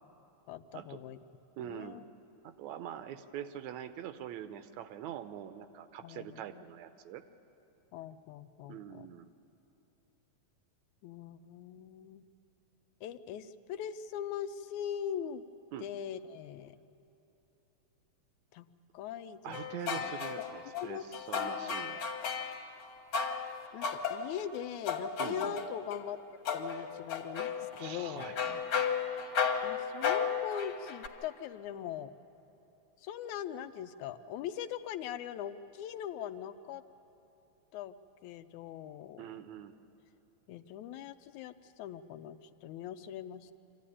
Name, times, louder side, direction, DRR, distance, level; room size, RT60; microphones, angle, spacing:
voice 1, 0.5-1.2 1.6-2.0 6.0-6.6 7.9-9.1 11.0-12.2 13.0-15.4 15.8-16.8 18.5-18.7 18.9-19.6 19.9-20.1 20.7-21.0 21.4-21.7 23.7-26.2 26.5-28.3 29.6-32.1 33.0-36.8 37.7-38.0 38.2-39.2 40.5-43.5, left 9 dB, 85° left, 10 dB, 2.0 m, -41 dB
voice 2, 1.6-2.1 2.4-7.2 8.7-9.3 15.7-15.9 19.4-21.0 21.3-22.0 25.2-25.6 27.7-28.9 39.2-39.7, right 10 dB, 75° right, 10 dB, 2.0 m, -44 dB
sound 1, 19.5-22.6 23.1-26.0 26.5-31.1, left 6 dB, 60° left, 2.4 m, -34 dB
25.0 x 14.5 x 9.9 m, 2.9 s
omnidirectional pair, 3.3 m